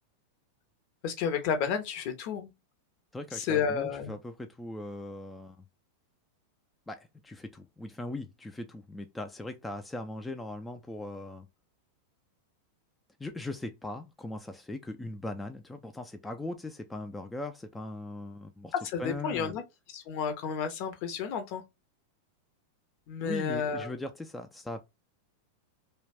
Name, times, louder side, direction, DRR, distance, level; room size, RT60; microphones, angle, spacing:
voice 1, 1.0-2.5 3.3-4.1 18.8-19.6 19.9-21.6 23.1-23.9, left 6 dB, 50° left, 0.6 m, -31 dB
voice 2, 3.1-5.7 6.9-11.5 13.2-18.7 19.0-19.6 23.2-24.8, left 2 dB, 10° left, 0.3 m, -39 dB
2.3 x 2.1 x 3.3 m
hypercardioid pair, 95°, 0 cm